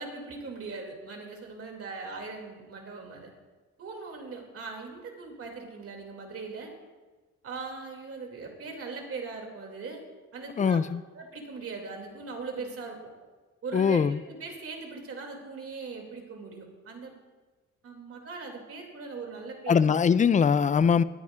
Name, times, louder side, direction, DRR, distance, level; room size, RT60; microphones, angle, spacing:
voice 1, 0.0-3.3 3.8-6.7 7.4-10.0 10.3-10.8 11.1-13.0 13.6-17.1 17.8-20.0, right 4 dB, 50° right, 2 dB, 2.5 m, -40 dB
voice 2, 10.6-11.0 13.7-14.2 19.7-21.0, left 6 dB, 25° left, 16 dB, 0.4 m, -22 dB
19.0 x 9.8 x 2.4 m, 1.3 s
cardioid pair, 90°, 30 cm